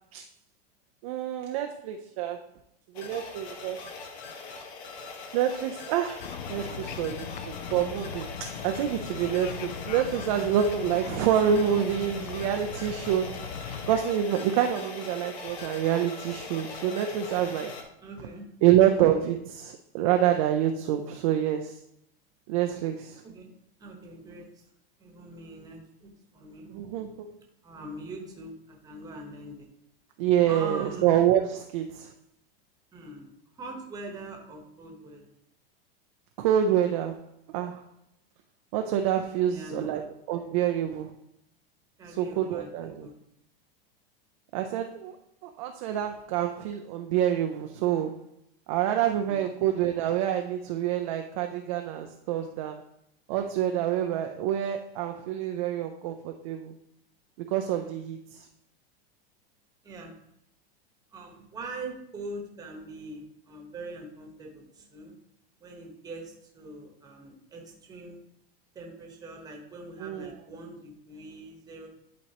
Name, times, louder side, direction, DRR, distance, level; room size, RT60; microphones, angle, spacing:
voice 1, 1.0-2.4 2.9-3.8 5.3-13.4 13.9-17.8 18.6-21.8 22.5-23.2 26.7-27.3 30.2-32.1 36.4-37.3 37.5-37.8 38.7-41.1 42.1-43.1 44.5-45.2 45.4-48.3 48.7-52.8 53.3-56.7 57.4-58.5 70.0-70.3, right 10 dB, 35° right, 5 dB, 0.4 m, -27 dB
sound 1, 2.9-17.8, left 4 dB, 85° left, 1.4 m, -41 dB
sound 2, 6.2-14.0, left 7 dB, 50° left, 0.5 m, -39 dB
voice 2, 18.0-18.5 23.2-23.5 23.8-24.7 25.0-26.7 27.6-29.7 30.5-31.2 32.9-35.3 39.4-40.1 42.0-43.1 49.1-49.4 59.8-60.2 61.1-65.1 65.6-68.2 68.7-71.9, right 2 dB, 10° right, 1 dB, 1.1 m, -42 dB
11.0 x 4.2 x 2.8 m, 0.75 s
supercardioid pair, 165°, 31 cm